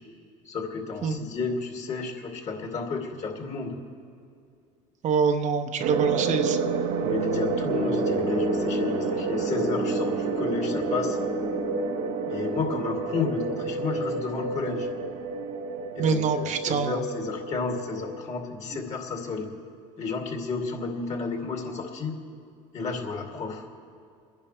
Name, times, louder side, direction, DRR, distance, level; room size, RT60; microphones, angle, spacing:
voice 1, 0.4-3.8 6.2-6.4 6.9-11.2 12.3-14.9 15.9-19.5 20.0-22.2 22.7-23.7, left 4 dB, 45° left, 1 dB, 2.6 m, -32 dB
voice 2, 5.0-6.6 16.0-17.0, right 5 dB, 50° right, 6 dB, 0.9 m, -25 dB
sound 1, 5.8-18.4, right 5 dB, 80° right, 1.1 m, -30 dB
Piano, 7.7-12.7, left 3 dB, 15° left, 0.7 m, -32 dB
30.0 x 10.5 x 3.3 m, 2.4 s
supercardioid pair, 85°, 16 cm